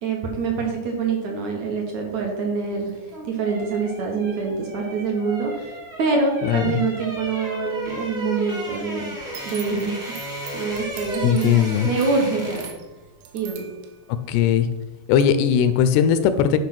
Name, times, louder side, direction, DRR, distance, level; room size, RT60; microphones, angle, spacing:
voice 1, 0.0-9.2 9.4-11.6 11.8-12.6 13.3-13.7, right 4 dB, 70° right, 1 dB, 1.7 m, -25 dB
sound 1, 2.9-12.9 13.2-13.4, right 1 dB, 30° right, 0.8 m, -34 dB
voice 2, 6.4-6.8 11.2-11.9 14.3-14.7 15.1-16.6, left 9 dB, 80° left, 10 dB, 2.4 m, -19 dB
sound 2, 9.2-14.8 15.2-15.3, right 8 dB, 85° right, 3.3 m, -44 dB
11.0 x 5.4 x 5.9 m, 1.1 s
omnidirectional pair, 5.1 m